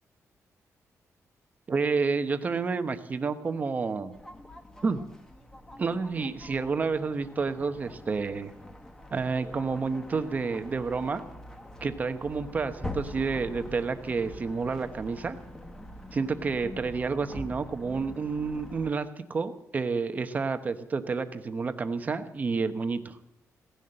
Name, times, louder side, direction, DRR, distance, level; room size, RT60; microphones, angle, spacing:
voice 1, 1.7-4.1 4.8-5.0 5.8-8.5 9.1-11.2 11.8-15.4 16.1-23.2, right 4 dB, 30° right, 9 dB, 1.0 m, -30 dB
sound 1, 4.1-18.9, left 1 dB, 10° left, 1.4 m, -44 dB
17.0 x 11.0 x 7.8 m, 0.89 s
wide cardioid pair, 180°, 6 cm